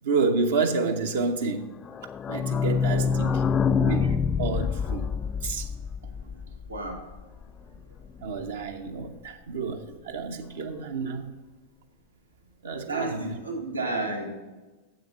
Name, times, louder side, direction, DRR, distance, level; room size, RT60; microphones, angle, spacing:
voice 1, 0.0-1.7 2.3-3.4 3.7-5.0 5.4-5.7 8.2-11.3 12.6-13.4, right 4 dB, 60° right, 5 dB, 0.8 m, -29 dB
sound 1, 1.9-7.4 7.7-7.8 8.0-8.1 8.4-8.5, left 6 dB, 25° left, 0.3 m, -26 dB
voice 2, 6.7-7.0 12.9-14.3, right 2 dB, 80° right, 1 dB, 1.5 m, -31 dB
7.8 x 6.7 x 6.9 m, 1.2 s
figure-of-eight pair, 90°, 0 cm